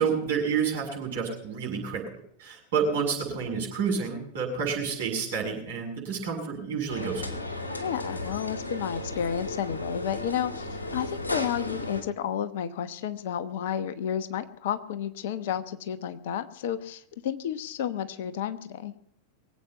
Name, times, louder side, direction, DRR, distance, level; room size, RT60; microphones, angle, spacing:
voice 1, 0.0-2.0 2.4-7.4, right 6 dB, 60° right, 0 dB, 7.0 m, -29 dB
sound 1, 6.9-12.0, left 2 dB, 75° left, 2.4 m, -34 dB
voice 2, 7.8-18.9, left 9 dB, 55° left, 12 dB, 1.0 m, -31 dB
23.0 x 8.5 x 5.7 m, 0.69 s
figure-of-eight pair, 90°, 0 cm